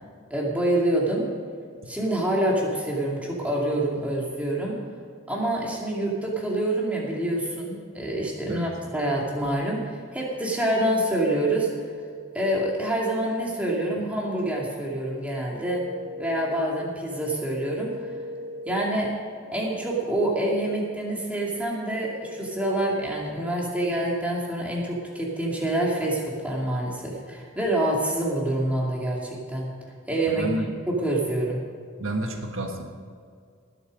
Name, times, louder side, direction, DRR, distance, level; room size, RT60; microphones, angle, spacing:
voice 1, 0.3-1.3 1.9-4.7 5.3-11.7 12.3-15.8 16.2-18.1 18.7-19.1 19.5-29.7 30.1-30.5 30.9-31.6, right 1 dB, 5° right, -3 dB, 2.5 m, -26 dB
sound 1, 15.2-23.1, left 2 dB, 30° right, 1.3 m, -41 dB
voice 2, 30.3-30.7 32.0-32.8, right 1 dB, 70° right, 3 dB, 1.4 m, -29 dB
19.0 x 8.4 x 5.3 m, 2.2 s
head